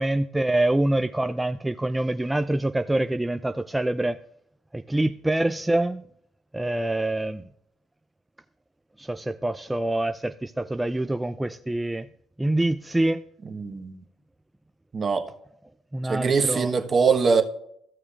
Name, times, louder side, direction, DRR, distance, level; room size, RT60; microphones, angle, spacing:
voice 1, 0.0-4.2 4.7-6.0 6.5-7.4 9.0-12.1 12.4-13.2 15.9-16.7, right 1 dB, 10° right, 0.4 m, -25 dB
voice 2, 13.4-14.0 14.9-15.2 16.1-17.4, right 5 dB, 40° right, 1.3 m, -22 dB
15.0 x 6.5 x 2.5 m
supercardioid pair, 75°, 0 cm